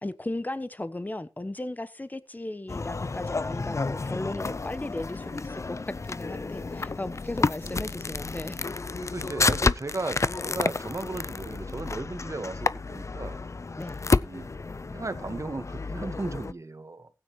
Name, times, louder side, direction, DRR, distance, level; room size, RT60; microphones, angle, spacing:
voice 1, 0.0-8.6 13.8-14.0, left 1 dB, 25° left, 1.0 m, -36 dB
sound 1, 2.7-16.5, left 3 dB, 45° left, 0.5 m, -30 dB
voice 2, 7.6-8.0 9.0-13.4 14.2-14.5 14.9-17.1, right 3 dB, 50° right, 1.5 m, -36 dB
16.0 x 9.2 x 3.1 m
cardioid pair, 40°, 7 cm